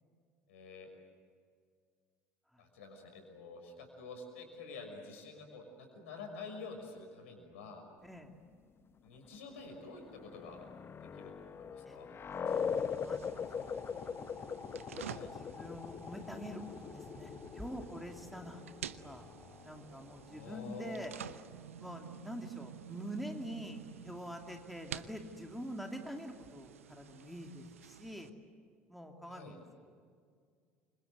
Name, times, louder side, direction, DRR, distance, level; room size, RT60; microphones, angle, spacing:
voice 1, 0.5-0.9 2.6-7.8 9.0-10.6 11.1-12.1 15.0-15.3 20.3-21.2 29.3-29.6, left 3 dB, 70° left, 4 dB, 6.0 m, -48 dB
sound 1, 9.7-21.2, left 6 dB, 35° left, 1.0 m, -42 dB
voice 2, 11.8-12.2 12.4-12.7 13.0-13.2 13.6-13.9 14.4-14.6 15.3-18.6 19.0-19.2 19.6-21.1 21.8-28.3 28.9-29.9, equal, ahead, 3 dB, 2.9 m, -45 dB
sound 2, 12.5-28.3, right 9 dB, 80° right, 0.8 m, -50 dB
29.0 x 26.0 x 8.0 m, 2.1 s
figure-of-eight pair, 60°, 7 cm